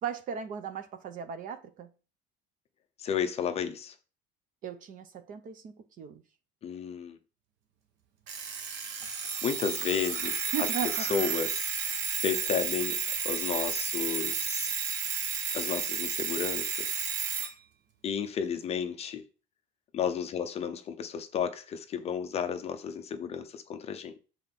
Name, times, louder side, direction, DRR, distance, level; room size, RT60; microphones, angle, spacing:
voice 1, 0.0-1.9 4.6-6.2 10.5-11.1, right 7 dB, 40° right, 0.8 m, -37 dB
voice 2, 3.0-3.9 6.6-7.2 9.1-10.4 11.1-13.0 13.2-14.7 15.5-17.0 18.0-19.2 19.9-24.2, left 7 dB, 30° left, 0.6 m, -33 dB
Alarm, 8.3-17.5, right 6 dB, 55° right, 1.2 m, -32 dB
7.3 x 3.8 x 5.9 m
cardioid pair, 180°, 21 cm